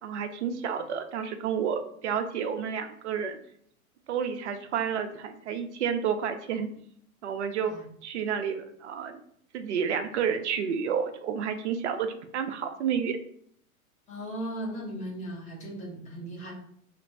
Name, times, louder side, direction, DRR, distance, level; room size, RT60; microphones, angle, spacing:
voice 1, 0.0-3.4 4.1-6.7 7.2-7.7 8.0-9.2 9.5-13.2, right 7 dB, 50° right, 7 dB, 0.6 m, -30 dB
voice 2, 14.1-16.5, right 1 dB, 15° left, -2 dB, 0.8 m, -37 dB
2.9 x 2.5 x 4.2 m, 0.65 s
figure-of-eight pair, 95°, 44 cm